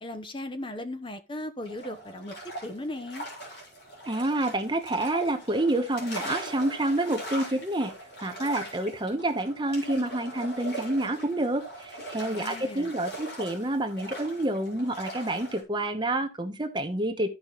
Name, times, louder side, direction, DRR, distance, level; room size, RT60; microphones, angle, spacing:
voice 1, 0.0-2.3 2.6-3.2 12.3-12.9, left 1 dB, 25° left, 0.9 m, -37 dB
sound 1, 1.6-15.6, right 1 dB, 65° left, 4.3 m, -41 dB
voice 2, 4.1-7.9 8.2-17.3, right 1 dB, 25° right, 1.0 m, -28 dB
14.0 x 5.3 x 3.0 m
head